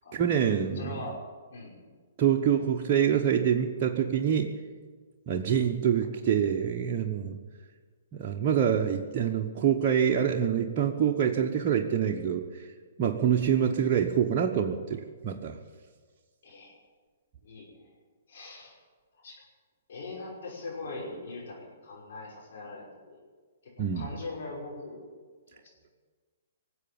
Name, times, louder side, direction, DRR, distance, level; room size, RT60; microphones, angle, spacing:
voice 1, 0.1-1.0 2.2-4.5 5.3-7.4 8.1-12.4 13.0-15.6 23.8-24.1, right 8 dB, 40° right, 0 dB, 1.1 m, -26 dB
voice 2, 0.7-1.2 1.5-2.0 16.4-16.8 17.4-17.9 18.3-18.8 19.2-19.3 19.9-23.2 23.6-25.0 25.5-25.6, left 2 dB, 65° left, -3 dB, 5.7 m, -41 dB
19.0 x 7.9 x 8.9 m, 1.5 s
hypercardioid pair, 130°, 0 cm